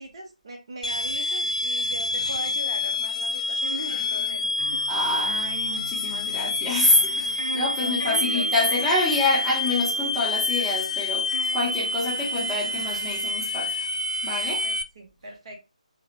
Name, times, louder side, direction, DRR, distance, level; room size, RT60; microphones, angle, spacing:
voice 1, 0.0-4.8 7.5-8.5 14.6-15.6, right 2 dB, 45° right, 0.8 m, -40 dB
sound 1, 0.8-14.8, left 2 dB, 70° left, 0.3 m, -28 dB
sound 2, 3.6-13.3, right 2 dB, 85° right, 0.5 m, -40 dB
voice 2, 4.9-13.7 14.2-14.7, left 2 dB, ahead, 0.6 m, -26 dB
2.7 x 2.0 x 2.7 m
figure-of-eight pair, 150°, 4 cm